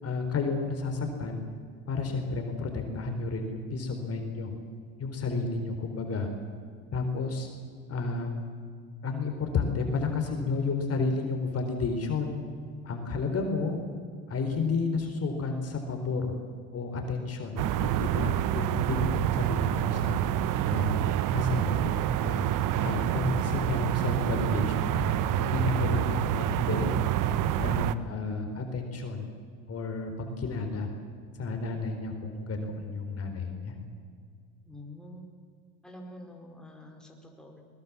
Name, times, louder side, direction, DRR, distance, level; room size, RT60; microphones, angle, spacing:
voice 1, 0.0-1.4 1.9-4.5 5.0-6.3 6.9-7.5 7.9-8.3 9.0-12.4 12.8-13.8 14.3-16.3 16.7-20.2 20.7-21.0 21.3-22.4 22.8-27.0 27.6-29.3 29.7-30.9 31.4-33.8, left 4 dB, 40° left, 4 dB, 4.1 m, -31 dB
sound 1, 17.6-27.9, right 11 dB, 55° right, 1.2 m, -27 dB
voice 2, 34.6-35.2 35.8-37.6, left 1 dB, ahead, 0 dB, 4.8 m, -46 dB
22.0 x 21.0 x 7.4 m, 2.1 s
hypercardioid pair, 85°, 38 cm